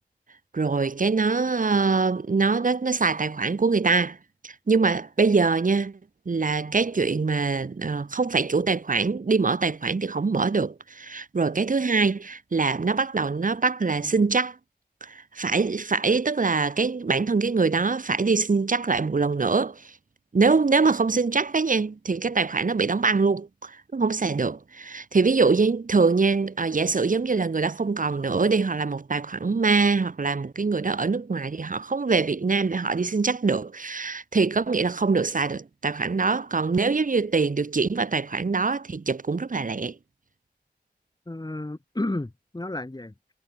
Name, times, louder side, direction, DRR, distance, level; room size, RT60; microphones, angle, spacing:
voice 1, 0.5-4.2 4.4-6.0 6.2-14.6 15.0-19.9 20.3-39.9, right 4 dB, 55° right, 1.6 m, -24 dB
voice 2, 41.3-43.3, left 2 dB, 25° left, 7.8 m, -32 dB
wide cardioid pair, 95°, 17 cm